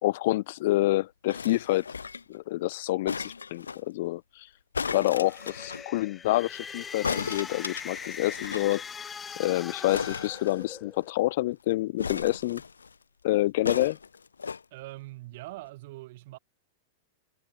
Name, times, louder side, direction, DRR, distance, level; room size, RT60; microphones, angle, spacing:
voice 1, 0.0-1.8 2.3-4.5 4.9-8.8 9.4-12.6 13.2-14.0, left 17 dB, 55° left, 1.9 m, -27 dB
sound 1, 1.3-2.4 3.1-3.8 4.7-5.8 7.0-8.7 9.0-9.1 9.3-9.5 9.9-11.1 12.0-12.9 13.6-14.6 15.3-15.4, left 5 dB, 80° left, 3.1 m, -35 dB
sound 2, 5.0-11.1, left 6 dB, 20° left, 3.4 m, -41 dB
voice 2, 14.7-16.4, right 19 dB, 55° right, 5.0 m, -42 dB
figure-of-eight pair, 95°, 0 cm